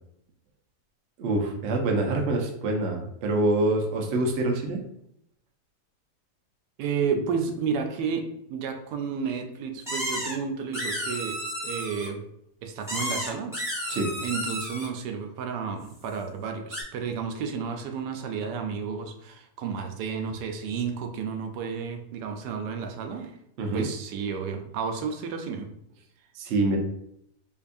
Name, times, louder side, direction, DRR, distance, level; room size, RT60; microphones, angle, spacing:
voice 1, 1.2-4.8 13.9-14.1 23.6-23.9 26.3-26.8, right 2 dB, 60° right, 2 dB, 0.7 m, -25 dB
voice 2, 6.8-11.4 11.6-12.2 12.6-13.5 14.2-23.4 23.7-25.7, right 6 dB, 85° right, 4 dB, 1.2 m, -31 dB
sound 1, 9.9-10.3 10.7-12.1 12.9-14.9 16.7-16.8, equal, 5° right, 0.6 m, -32 dB
5.1 x 2.3 x 2.5 m, 0.74 s
omnidirectional pair, 1.8 m